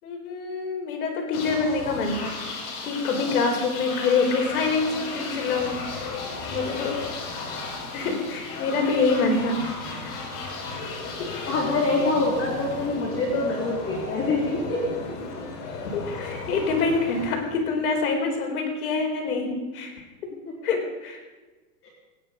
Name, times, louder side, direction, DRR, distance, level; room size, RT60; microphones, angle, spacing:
voice 1, 0.0-2.4 2.8-5.8 6.4-7.1 7.9-10.2 11.2-11.3 15.9-19.9 20.2-20.3 20.6-21.2, left 4 dB, 70° left, 3 dB, 4.4 m, -26 dB
sound 1, 1.3-18.0, left 3 dB, 50° left, 6.0 m, -35 dB
voice 2, 11.5-14.8, left 2 dB, 30° left, -3 dB, 4.0 m, -25 dB
25.0 x 10.5 x 5.3 m, 1.2 s
hypercardioid pair, 125°, 45 cm